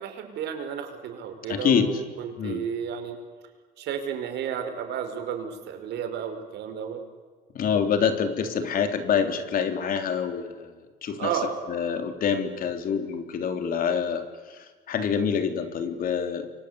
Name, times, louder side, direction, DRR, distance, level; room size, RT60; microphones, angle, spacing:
voice 1, 0.0-3.2 3.8-7.0 11.2-11.6, right 8 dB, 75° right, 7 dB, 5.2 m, -32 dB
voice 2, 1.5-2.0 2.4-2.6 7.5-10.7 11.0-11.3 11.7-14.2 14.5-14.6 14.9-16.5, left 7 dB, 55° left, 7 dB, 3.6 m, -26 dB
29.5 x 24.0 x 8.4 m, 1.5 s
cardioid pair, 135°, 18 cm